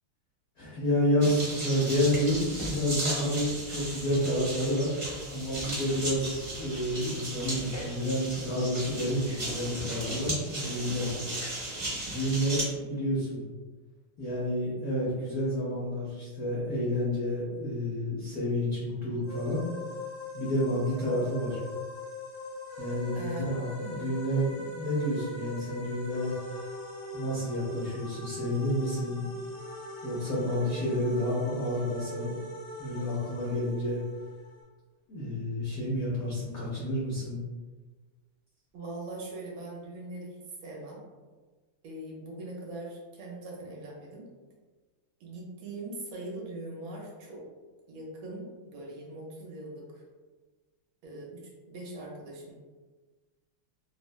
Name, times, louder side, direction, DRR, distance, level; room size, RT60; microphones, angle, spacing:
voice 1, 0.6-5.0 5.3-11.2 12.1-13.5 14.2-19.6 20.3-21.6 22.8-26.3 27.1-29.3 30.0-32.3 32.8-34.0 35.1-37.4, equal, 85° left, -7 dB, 0.7 m, -30 dB
sound 1, 1.2-12.6, right 1 dB, 60° right, 0.4 m, -36 dB
sound 2, 19.2-34.6, left 2 dB, 60° left, 1.5 m, -41 dB
voice 2, 23.1-23.7 38.7-40.4 40.6-41.0 41.8-44.3 45.2-47.4 47.9-50.0 51.0-52.5, right 2 dB, 75° right, -3 dB, 1.4 m, -41 dB
3.6 x 2.1 x 2.2 m, 1.3 s
omnidirectional pair, 2.4 m